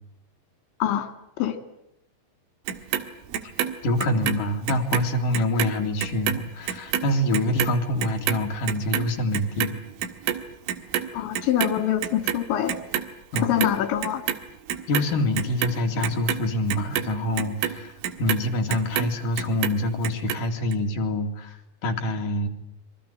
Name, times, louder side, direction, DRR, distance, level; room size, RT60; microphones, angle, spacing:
voice 1, 0.8-1.1 1.4-1.6 11.1-12.8 13.4-14.2, left 11 dB, 70° left, 9 dB, 4.2 m, -24 dB
Clock, 2.7-5.1 5.3-11.8 12.0-13.1 13.3-14.4 14.7-19.1 19.4-20.4 20.7-20.8, right 10 dB, 85° right, 4.1 m, -28 dB
voice 2, 3.8-9.8 13.3-13.5 14.9-22.5, left 1 dB, 50° left, 4 dB, 3.6 m, -26 dB
26.0 x 24.0 x 8.9 m, 0.81 s
omnidirectional pair, 5.6 m